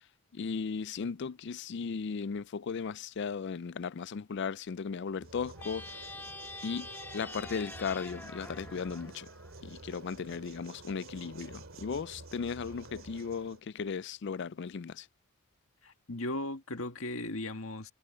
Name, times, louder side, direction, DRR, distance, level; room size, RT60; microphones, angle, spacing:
voice 1, 0.3-6.0 6.6-9.3 9.6-15.1, left 5 dB, 55° left, 0.4 m, -36 dB
sound 1, 5.2-13.6, right 3 dB, 75° right, 2.5 m, -49 dB
sound 2, 5.5-10.0, left 2 dB, 10° left, 0.8 m, -46 dB
voice 2, 15.8-17.9, left 2 dB, 85° left, 1.9 m, -37 dB
head